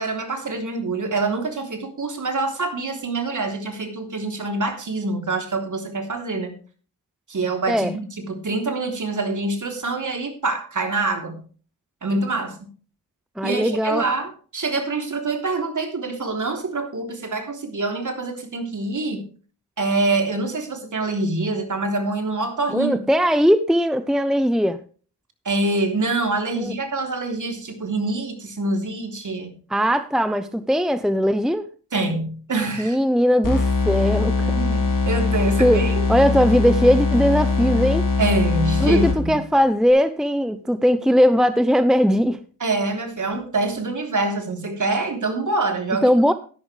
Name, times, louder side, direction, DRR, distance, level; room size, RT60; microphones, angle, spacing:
voice 1, 0.0-6.6 7.3-11.4 12.0-12.7 13.4-19.3 19.8-23.0 25.5-29.5 31.9-33.0 34.4-36.1 38.2-39.4 42.6-46.1, right 2 dB, 45° right, 3.5 m, -25 dB
voice 2, 13.4-14.0 22.7-24.8 26.6-26.7 29.7-31.7 32.8-34.6 35.6-35.8 36.1-38.1 38.8-42.4 46.0-46.3, equal, ahead, 0.7 m, -19 dB
sound 1, 33.4-39.5, left 4 dB, 50° left, 3.7 m, -21 dB
13.0 x 11.0 x 3.4 m
supercardioid pair, 50°, 42 cm